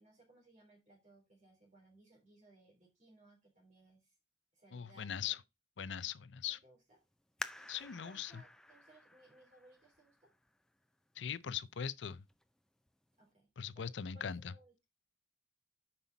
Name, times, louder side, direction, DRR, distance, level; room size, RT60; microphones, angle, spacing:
voice 1, 0.0-4.2 4.5-5.4 6.4-7.0 7.6-10.3 13.2-14.7, right 1 dB, 40° right, 3.4 m, -64 dB
voice 2, 4.7-5.4 5.8-6.6 7.7-8.4 11.2-12.2 13.6-14.4, left 8 dB, 85° left, 0.5 m, -40 dB
sound 1, 7.4-10.8 11.4-11.5 12.1-12.5 12.9-13.0, left 1 dB, 5° left, 0.4 m, -49 dB
8.2 x 5.6 x 4.0 m
head